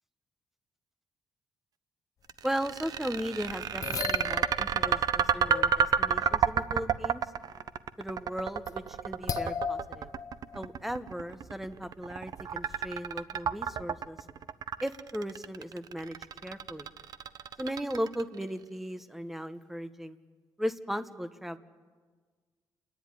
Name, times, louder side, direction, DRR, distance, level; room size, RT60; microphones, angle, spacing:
sound 1, 2.3-18.4, right 7 dB, 60° right, 0.7 m, -30 dB
voice 1, 2.4-7.2 8.0-10.1 10.5-14.2 14.8-16.2 16.4-16.9 17.6-20.2 20.6-21.6, equal, 5° right, 11 dB, 0.9 m, -37 dB
sound 2, 2.5-2.6 2.8-2.9 3.5-5.7 6.2-6.4 7.6-7.9 8.3-8.9 9.3-10.7 11.0-11.1 11.7-11.8 12.7-13.1, left 7 dB, 50° left, 0.9 m, -37 dB
29.0 x 10.5 x 9.6 m, 1.5 s
cardioid pair, 120°, 8 cm